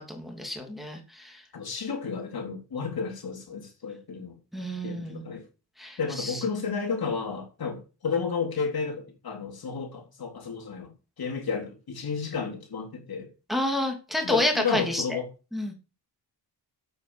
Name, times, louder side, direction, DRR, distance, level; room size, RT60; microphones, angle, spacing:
voice 1, 0.0-1.4 4.5-5.3 5.8-6.4 13.5-15.0 15.5-15.7, left 1 dB, ahead, 2.9 m, -29 dB
voice 2, 1.5-4.3 4.8-5.4 6.0-10.9 11.2-13.3 14.2-15.3, left 5 dB, 55° left, 3.8 m, -32 dB
8.6 x 8.5 x 7.3 m
wide cardioid pair, 115°, 43 cm